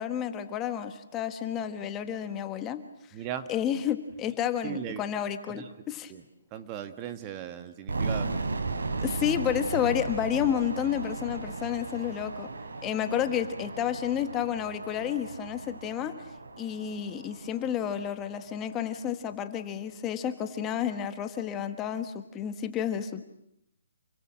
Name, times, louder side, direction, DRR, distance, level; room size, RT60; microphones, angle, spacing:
voice 1, 0.0-2.8 3.5-6.1 9.0-12.5 12.8-16.1 16.6-23.2, left 9 dB, 15° left, 9 dB, 1.5 m, -30 dB
voice 2, 3.1-3.5 4.6-5.0 5.5-5.7 6.1-6.2 6.5-8.3, right 10 dB, 20° right, 10 dB, 1.5 m, -37 dB
sound 1, 7.9-18.8, right 3 dB, 85° right, 3.5 m, -36 dB
29.0 x 23.0 x 7.5 m, 0.78 s
hypercardioid pair, 160°, 0 cm